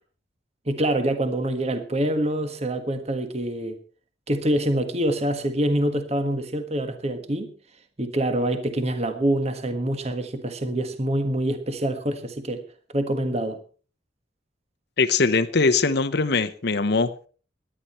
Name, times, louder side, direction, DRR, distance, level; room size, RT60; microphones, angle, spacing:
voice 1, 0.7-3.8 4.3-7.5 8.0-12.6 12.9-13.6, right 1 dB, 35° right, 1.5 m, -25 dB
voice 2, 15.0-17.3, left 4 dB, 60° left, 0.9 m, -21 dB
18.0 x 11.5 x 4.4 m
head